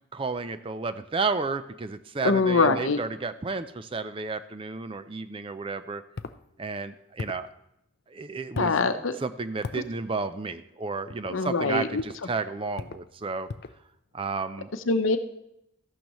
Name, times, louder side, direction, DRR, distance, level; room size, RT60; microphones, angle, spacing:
voice 1, 0.1-6.0 6.6-7.5 8.1-8.8 9.2-13.5 14.1-14.7, right 4 dB, 25° right, 11 dB, 0.4 m, -32 dB
voice 2, 2.2-3.0 8.6-9.2 11.3-12.0 14.9-15.2, left 3 dB, 75° left, 9 dB, 0.8 m, -23 dB
sound 1, 6.2-6.4 7.2-7.5 8.5-8.8 9.6-9.9 11.1-11.4 12.0-12.2 12.8-13.1 13.5-13.8, left 4 dB, 50° left, 0.4 m, -37 dB
14.0 x 11.5 x 3.0 m, 0.80 s
head